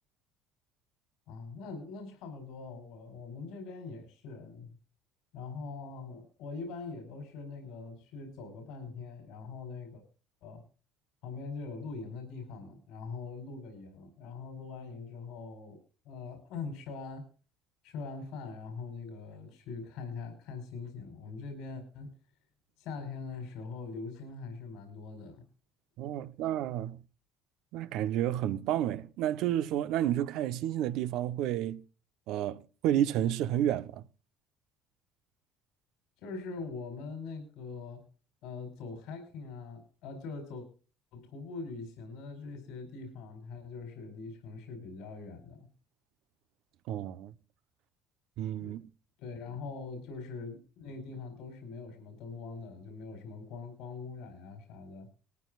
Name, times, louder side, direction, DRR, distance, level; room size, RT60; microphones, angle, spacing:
voice 1, 1.3-4.7 5.3-10.0 10.4-10.6 11.2-15.8 16.0-17.3 17.8-22.1 22.8-25.4 36.2-38.0 38.4-40.7 41.1-45.7 48.6-48.8 49.2-55.1, left 4 dB, 75° left, 4.6 m, -42 dB
voice 2, 26.0-27.0 27.7-31.8 32.3-34.0 46.9-47.3 48.4-48.8, right 11 dB, 70° right, 1.1 m, -31 dB
19.5 x 13.5 x 2.5 m
supercardioid pair, 90°, 0 cm